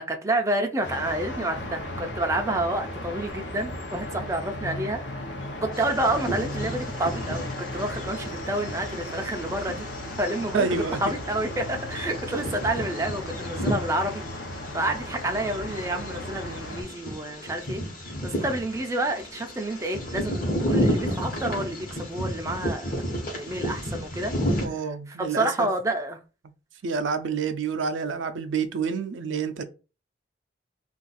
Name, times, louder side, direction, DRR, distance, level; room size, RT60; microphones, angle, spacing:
voice 1, 0.0-5.0 5.6-9.9 10.2-10.7 11.0-14.2 14.7-17.8 18.2-22.9 23.3-24.3 25.2-26.2, right 1 dB, 15° right, 0.4 m, -29 dB
sound 1, 0.8-16.8, left 1 dB, 65° left, 0.7 m, -36 dB
Bird vocalization bird call bird song, 5.7-24.7, equal, 45° left, 1.1 m, -32 dB
voice 2, 10.5-11.0 24.6-25.7 26.8-29.6, right 5 dB, 80° right, 0.4 m, -28 dB
2.5 x 2.4 x 3.9 m
head